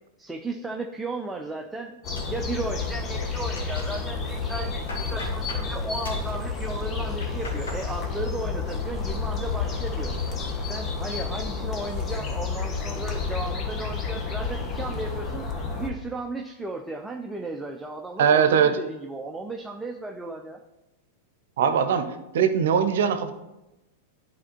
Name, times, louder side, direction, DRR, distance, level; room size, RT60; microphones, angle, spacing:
voice 1, 0.2-10.1 10.7-15.4 15.7-20.6, right 2 dB, 10° right, 2 dB, 0.6 m, -35 dB
sound 1, 2.0-15.9, left 5 dB, 30° left, 1.2 m, -31 dB
sound 2, 2.2-3.0 3.3-4.0 4.5-5.7 6.0-6.3 7.0-7.9 8.2-8.7 9.1-9.5, left 1 dB, 80° left, 2.1 m, -42 dB
sound 3, 2.9-12.4, left 4 dB, 10° left, 1.0 m, -39 dB
voice 2, 18.2-18.8 21.6-23.3, right 7 dB, 70° right, 9 dB, 0.7 m, -21 dB
11.0 x 4.4 x 3.0 m, 0.97 s
hypercardioid pair, 100°, 0 cm